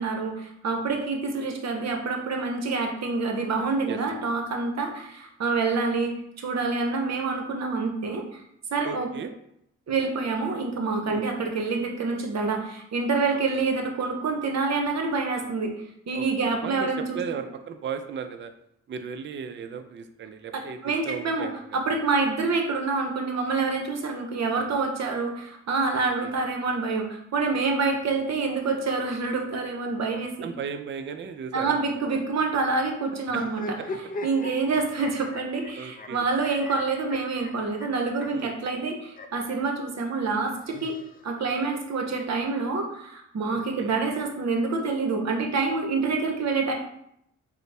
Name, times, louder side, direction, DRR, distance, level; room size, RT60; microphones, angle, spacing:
voice 1, 0.0-8.4 8.7-9.1 9.9-15.7 16.1-17.2 20.5-30.5 31.5-33.8 34.2-41.0 41.2-46.7, right 4 dB, 60° right, 3 dB, 0.8 m, -27 dB
voice 2, 8.8-9.3 11.0-11.3 16.1-16.9 17.1-18.5 18.9-20.8 21.1-21.8 25.9-26.4 30.4-31.8 35.7-36.3 38.3-38.5 43.5-43.9, right 6 dB, 40° right, 8 dB, 0.4 m, -36 dB
sound 1, 33.3-39.5 40.4-41.6, left 2 dB, 30° left, 0.4 m, -39 dB
3.9 x 2.1 x 3.3 m, 0.75 s
supercardioid pair, 50°, 31 cm